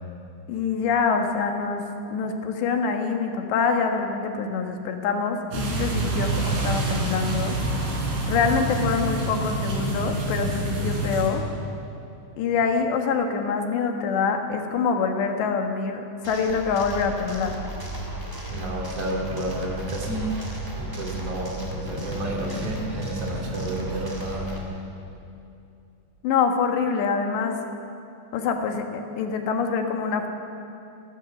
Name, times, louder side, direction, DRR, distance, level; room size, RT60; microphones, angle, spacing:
voice 1, 0.5-1.8 2.1-7.6 8.3-11.4 12.4-17.6 26.2-27.6 28.3-30.3, left 5 dB, 80° left, 4 dB, 3.8 m, -25 dB
sound 1, 5.5-11.3, right 2 dB, 90° right, 5.9 m, -27 dB
sound 2, 16.2-24.6, right 2 dB, 5° right, 1.9 m, -34 dB
voice 2, 18.5-20.4 20.7-24.6, right 1 dB, 40° right, -1 dB, 3.8 m, -30 dB
29.0 x 14.0 x 7.3 m, 2.6 s
omnidirectional pair, 5.0 m